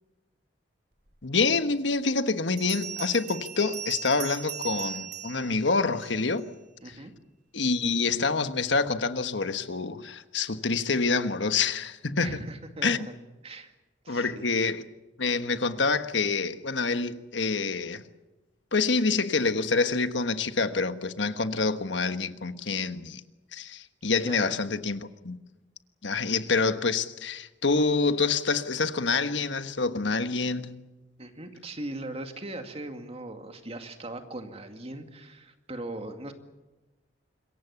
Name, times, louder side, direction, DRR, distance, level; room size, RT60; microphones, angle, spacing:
voice 1, 1.2-6.5 6.8-7.0 7.5-12.4 12.8-13.1 14.1-14.8 15.2-18.0 18.7-23.2 23.5-25.4 26.0-30.8, left 4 dB, 75° left, 1.4 m, -27 dB
Bell, 2.6-6.5, right 9 dB, 60° right, 2.7 m, -38 dB
voice 2, 6.8-7.1 12.2-13.1 13.4-13.7 14.0-14.6 24.2-24.6 31.2-36.3, right 2 dB, 35° right, 2.3 m, -39 dB
26.5 x 22.5 x 7.1 m
head